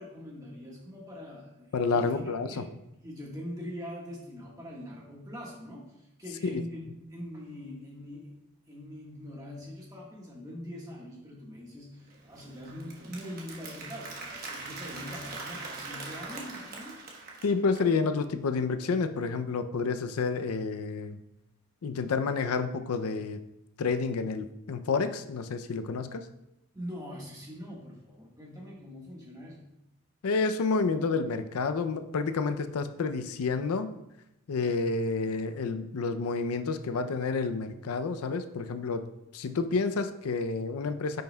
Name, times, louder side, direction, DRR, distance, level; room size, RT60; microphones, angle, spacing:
voice 1, 0.0-2.7 3.0-8.4 8.7-17.0 26.7-29.7, equal, 15° right, -3 dB, 1.4 m, -43 dB
voice 2, 1.7-2.5 6.5-6.6 17.4-21.2 21.8-23.4 23.8-26.2 30.2-33.9 34.5-39.1 39.3-41.2, left 4 dB, 90° left, 9 dB, 0.5 m, -29 dB
Applause, 12.1-17.9, right 3 dB, 45° right, 1.1 m, -42 dB
9.2 x 5.5 x 2.2 m, 0.86 s
head